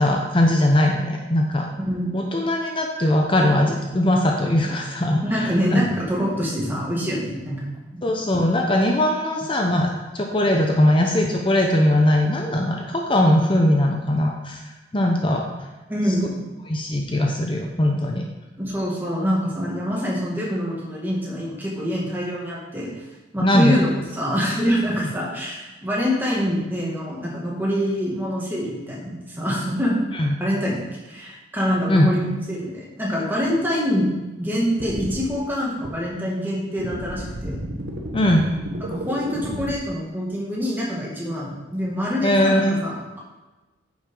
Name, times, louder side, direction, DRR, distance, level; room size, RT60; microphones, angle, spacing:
voice 1, 0.0-1.7 2.1-5.8 8.0-14.6 14.9-15.7 16.7-18.2 23.4-23.8 30.1-30.4 31.9-32.1 38.1-38.5 42.2-42.8, left 1 dB, 25° left, 1 dB, 0.7 m, -20 dB
voice 2, 5.2-7.6 7.9-8.1 15.9-16.4 18.6-22.9 23.3-30.0 30.4-34.1 34.4-37.6 38.8-43.2, equal, 10° right, -5 dB, 2.2 m, -25 dB
sound 1, 34.8-35.3 35.8-35.9 36.8-39.8, right 1 dB, 60° right, 1.1 m, -32 dB
9.5 x 7.2 x 3.8 m, 1.1 s
head